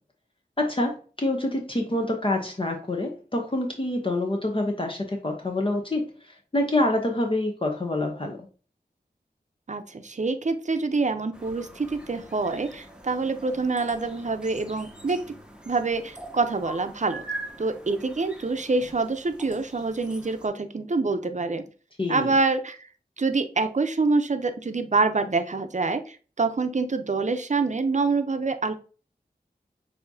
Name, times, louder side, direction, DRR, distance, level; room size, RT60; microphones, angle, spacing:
voice 1, 0.6-8.5 22.0-22.3, left 1 dB, 35° left, 2 dB, 0.9 m, -27 dB
voice 2, 9.7-15.2 15.7-17.2 17.6-21.6 22.1-22.9 23.2-28.7, right 3 dB, 50° right, 8 dB, 0.7 m, -26 dB
sound 1, 11.3-20.5, right 2 dB, 5° right, 0.9 m, -43 dB
6.7 x 2.8 x 2.7 m, 0.38 s
cardioid pair, 45°, 16 cm